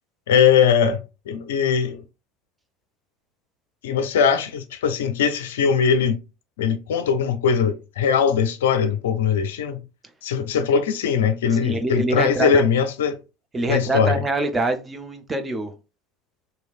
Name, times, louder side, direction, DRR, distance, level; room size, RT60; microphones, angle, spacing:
voice 1, 0.3-2.0 3.8-6.2 6.6-9.8 10.2-13.2 13.7-14.2, left 7 dB, 70° left, 0.4 m, -20 dB
voice 2, 11.6-12.7 13.5-15.7, right 2 dB, 20° right, 0.6 m, -25 dB
3.0 x 2.7 x 2.4 m
figure-of-eight pair, 70°, 0 cm